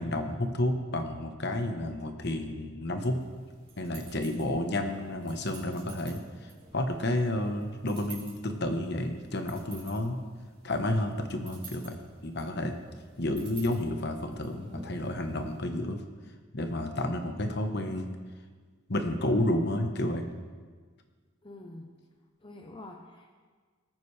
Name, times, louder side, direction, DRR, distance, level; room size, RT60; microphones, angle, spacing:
voice 1, 0.0-3.2 3.8-10.2 10.6-12.0 12.2-12.7 13.2-16.0 16.5-18.1 18.9-20.2, left 1 dB, 50° left, 5 dB, 1.1 m, -31 dB
sound 1, 3.1-15.6, right 3 dB, 25° right, 4.1 m, -51 dB
voice 2, 21.4-21.9 22.4-23.3, left 2 dB, 25° left, 2 dB, 0.8 m, -46 dB
19.5 x 9.2 x 3.4 m, 1.5 s
head